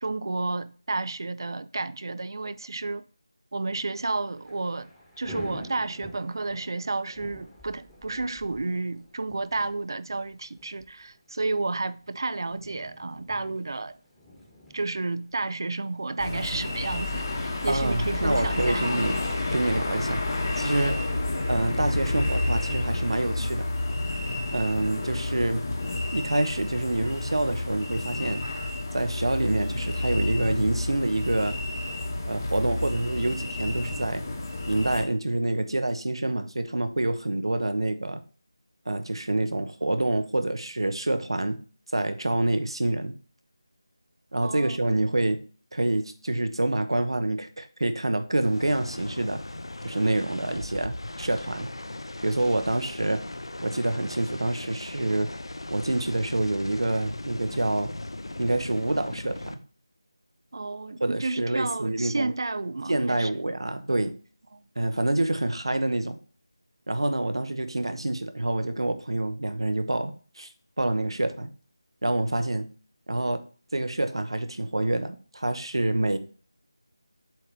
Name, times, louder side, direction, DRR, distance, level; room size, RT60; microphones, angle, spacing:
voice 1, 0.0-3.0 3.5-4.9 5.2-14.0 14.7-18.9 44.4-44.8 60.5-63.3 64.5-64.6, right 3 dB, 55° right, 0.4 m, -31 dB
Thunder / Rain, 4.1-16.8, left 1 dB, 5° left, 1.2 m, -48 dB
sound 1, 16.2-35.1, left 2 dB, 40° left, 1.3 m, -30 dB
voice 2, 17.7-19.2 19.5-20.3 20.6-21.1 21.5-23.7 24.5-25.7 26.1-28.4 28.9-31.6 32.3-34.2 34.6-38.2 38.9-41.6 41.9-43.2 44.3-45.4 45.7-49.4 49.8-51.7 52.2-53.2 53.6-55.3 55.7-57.9 58.4-59.6 61.0-62.3 62.9-64.1 64.8-66.2 66.9-70.5 70.8-71.5 72.0-72.7 73.1-73.4 73.7-76.2, right 1 dB, 85° right, 0.9 m, -27 dB
sound 2, 48.4-59.6, left 2 dB, 80° left, 0.7 m, -38 dB
7.5 x 3.1 x 5.2 m
figure-of-eight pair, 170°, 3 cm